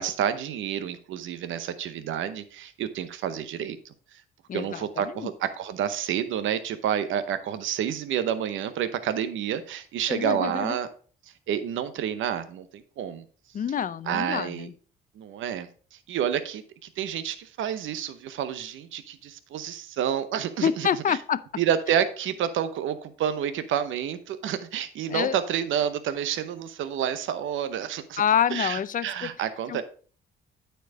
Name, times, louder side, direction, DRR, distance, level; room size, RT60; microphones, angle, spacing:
voice 1, 0.0-4.2 4.5-10.9 11.5-13.2 14.1-14.7 15.2-21.2 21.6-28.2 28.5-29.8, right 9 dB, 80° right, 0.8 m, -29 dB
voice 2, 4.5-5.3 10.1-10.8 13.5-14.7 20.6-21.4 25.1-25.3 28.2-29.3 29.7-29.8, left 8 dB, 40° left, 0.5 m, -27 dB
9.2 x 4.5 x 4.7 m
cardioid pair, 90°, 20 cm